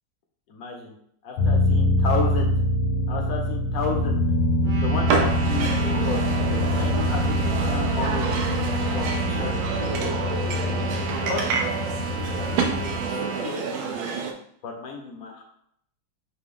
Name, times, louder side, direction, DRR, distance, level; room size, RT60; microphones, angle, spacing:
voice 1, 0.5-0.9 1.2-2.5 3.1-4.2 4.6-6.2 6.8-8.3 8.9-10.9 11.3-11.4 12.4-13.6 14.6-15.4, left 4 dB, 60° left, 1 dB, 1.0 m, -33 dB
sound 1, 1.4-13.1, left 1 dB, 85° left, 1.5 m, -24 dB
sound 2, 4.6-13.5, right 4 dB, 65° right, 1.2 m, -34 dB
sound 3, 5.1-14.3, right 5 dB, 90° right, 1.4 m, -29 dB
5.9 x 2.2 x 3.7 m, 0.69 s
omnidirectional pair, 2.1 m